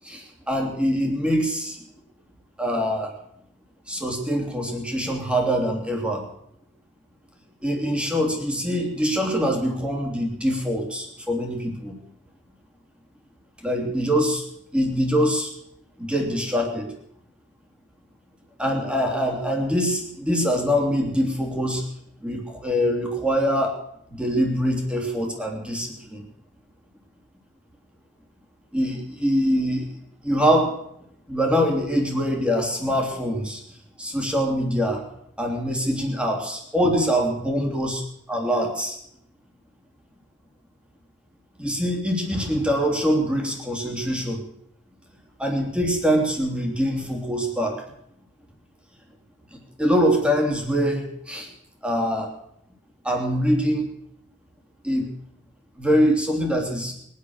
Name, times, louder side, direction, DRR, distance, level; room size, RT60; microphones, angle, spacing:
voice 1, 0.0-1.8 2.6-3.1 3.9-6.3 7.6-12.0 13.6-14.4 14.7-15.5 16.0-16.9 18.6-21.8 22.2-23.8 24.1-26.2 28.7-30.0 30.2-30.7 31.3-33.6 34.0-35.0 35.4-38.0 38.3-39.0 41.6-44.4 45.4-47.8 49.5-51.5 51.8-52.3 53.0-53.9 54.8-55.1 55.8-56.9, equal, 5° right, 1 dB, 3.2 m, -24 dB
22.0 x 10.0 x 6.5 m, 0.76 s
head